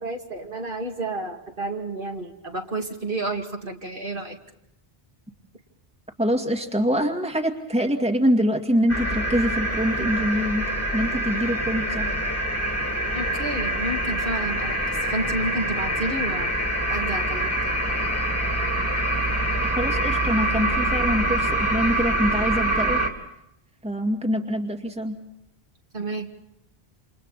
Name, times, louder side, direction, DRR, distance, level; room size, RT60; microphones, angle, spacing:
voice 1, 0.0-4.4 13.1-14.8 15.1-16.5 16.9-17.7 25.9-26.3, right 2 dB, 55° right, 2 dB, 2.5 m, -30 dB
voice 2, 6.2-12.2 19.6-23.0 23.8-25.2, equal, 5° right, 3 dB, 2.1 m, -25 dB
sound 1, 8.9-23.1, right 1 dB, 15° left, 2.7 m, -25 dB
29.0 x 28.0 x 4.2 m, 0.80 s
omnidirectional pair, 1.0 m